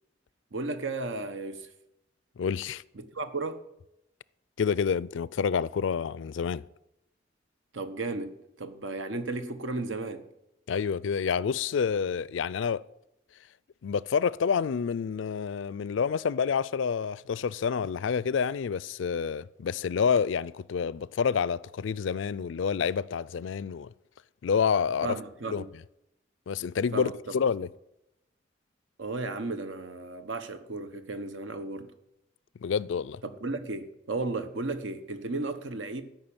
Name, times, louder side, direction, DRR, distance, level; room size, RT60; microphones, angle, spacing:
voice 1, 0.5-1.7 2.9-3.6 7.7-10.3 25.0-25.7 26.9-27.4 29.0-31.9 33.2-36.0, right 2 dB, 80° right, 1.0 m, -34 dB
voice 2, 2.4-2.8 4.6-6.6 10.7-12.8 13.8-23.9 24.4-25.2 25.5-25.6 26.5-27.7 32.6-33.2, left 6 dB, 80° left, 0.4 m, -28 dB
13.0 x 5.8 x 8.7 m
head